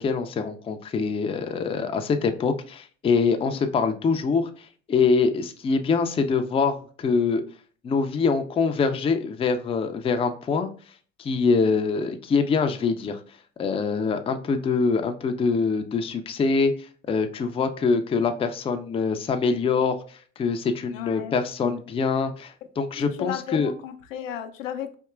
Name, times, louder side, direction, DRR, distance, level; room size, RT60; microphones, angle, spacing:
voice 1, 0.0-4.5 4.9-7.4 7.8-10.7 11.2-13.2 13.6-16.7 17.1-20.0 20.4-23.7, left 5 dB, 15° left, 7 dB, 0.4 m, -24 dB
voice 2, 20.9-21.7 23.0-24.9, left 10 dB, 85° left, 7 dB, 0.6 m, -35 dB
4.4 x 2.8 x 2.3 m, 0.43 s
hypercardioid pair, 65°, 38 cm